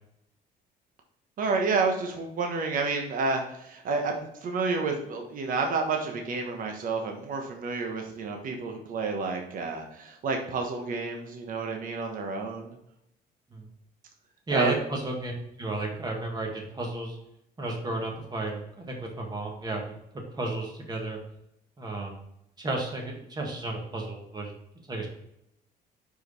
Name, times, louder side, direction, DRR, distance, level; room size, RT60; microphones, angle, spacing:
voice 1, 1.4-12.8 14.5-14.8, right 4 dB, 55° right, 3 dB, 1.2 m, -30 dB
voice 2, 14.5-15.3 15.6-17.2 17.6-19.9 20.3-21.2 21.8-22.2 22.6-24.5 24.9-25.1, right 2 dB, 25° right, 1 dB, 1.8 m, -32 dB
5.1 x 4.8 x 4.0 m, 0.79 s
cardioid pair, 110°, 17 cm